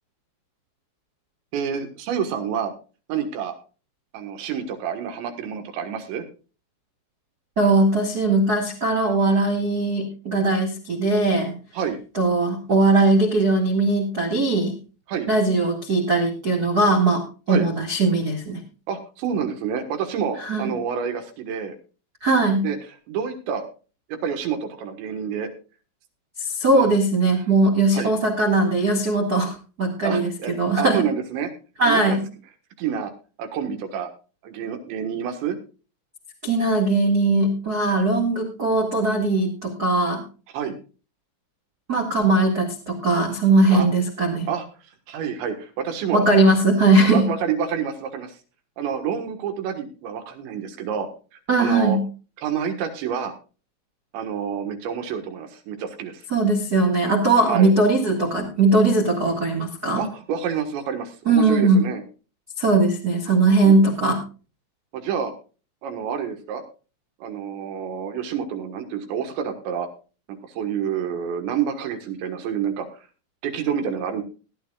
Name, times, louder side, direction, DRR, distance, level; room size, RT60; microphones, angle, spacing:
voice 1, 1.5-2.7 3.1-3.5 4.1-6.3 11.7-12.0 15.1-15.3 17.5-17.7 18.9-21.8 22.6-23.6 24.1-25.5 26.7-26.9 27.9-28.1 30.0-30.5 30.8-31.5 31.8-32.2 32.8-33.1 33.4-34.1 34.4-35.6 40.5-40.8 43.7-43.9 44.5-44.7 45.1-46.3 47.1-48.4 48.8-51.1 51.6-52.0 52.4-53.3 54.1-56.3 57.5-57.7 60.0-62.0 63.6-63.8 64.9-65.3 65.8-66.6 67.2-69.9 70.3-73.1 73.4-74.2, right 7 dB, 70° right, 6 dB, 3.6 m, -28 dB
voice 2, 7.6-11.5 12.1-14.7 15.3-18.6 20.4-20.7 22.2-22.7 26.4-30.3 30.5-31.0 31.8-32.2 36.4-40.2 41.9-44.5 46.1-47.3 51.5-52.0 56.3-60.0 61.2-61.9 62.6-64.2, right 2 dB, 85° right, 1 dB, 0.8 m, -20 dB
18.5 x 11.5 x 2.4 m, 0.34 s
omnidirectional pair, 5.6 m